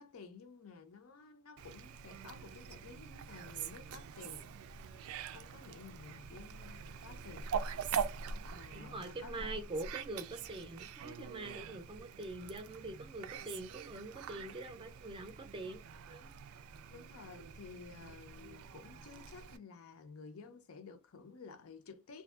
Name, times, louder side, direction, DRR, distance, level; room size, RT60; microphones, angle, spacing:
voice 1, 0.0-4.5 4.9-7.5 8.5-9.7 16.9-22.2, left 5 dB, 80° left, 0.5 m, -53 dB
Fowl, 1.6-19.6, right 6 dB, 85° right, 0.3 m, -44 dB
voice 2, 8.7-15.8 16.1-16.3, right 2 dB, 25° right, 0.5 m, -44 dB
2.6 x 2.5 x 2.3 m
head